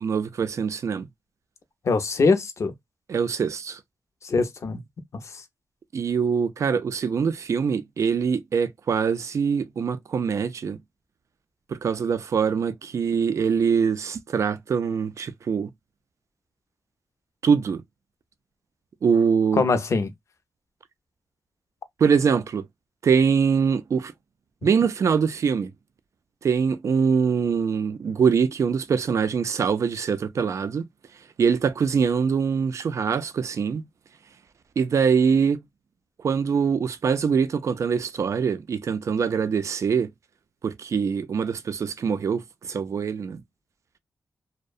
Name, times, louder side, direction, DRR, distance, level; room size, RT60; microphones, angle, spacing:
voice 1, 0.0-1.1 3.1-3.8 5.9-10.8 11.7-15.7 17.4-17.8 19.0-19.6 22.0-22.7 23.0-24.1 24.6-25.7 26.4-30.8 31.4-33.9 34.8-35.6 36.2-40.1 40.6-43.4, right 6 dB, 65° right, 0.3 m, -23 dB
voice 2, 1.9-2.7 4.2-4.8 19.6-20.1, left 4 dB, 60° left, 0.5 m, -22 dB
2.6 x 2.0 x 2.2 m
wide cardioid pair, 100°, 6 cm